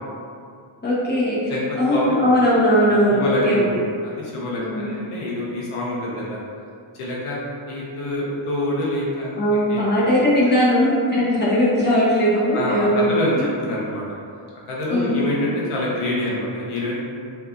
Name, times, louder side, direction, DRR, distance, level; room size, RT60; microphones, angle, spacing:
voice 1, 0.8-3.6 4.6-4.9 9.4-13.5 14.9-15.2, equal, 20° left, -9 dB, 0.7 m, -19 dB
voice 2, 1.5-2.2 2.7-2.8 3.1-6.4 7.0-9.4 9.7-9.8 12.5-13.4 13.6-14.0 14.7-17.0, left 1 dB, 80° left, -5 dB, 0.7 m, -26 dB
2.8 x 2.3 x 2.4 m, 2.3 s
cardioid pair, 110°, 50 cm